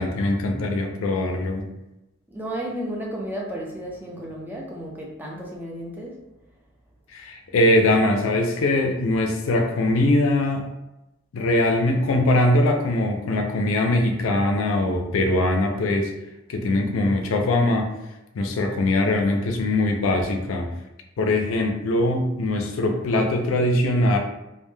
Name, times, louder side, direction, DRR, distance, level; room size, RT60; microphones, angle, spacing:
voice 1, 0.0-1.7 7.1-10.7 11.3-16.1 16.5-17.9 18.3-20.7 21.2-24.2, left 1 dB, 85° left, 4 dB, 0.4 m, -22 dB
voice 2, 2.3-6.2, equal, 10° right, -2 dB, 0.4 m, -33 dB
2.1 x 2.1 x 3.1 m, 0.95 s
head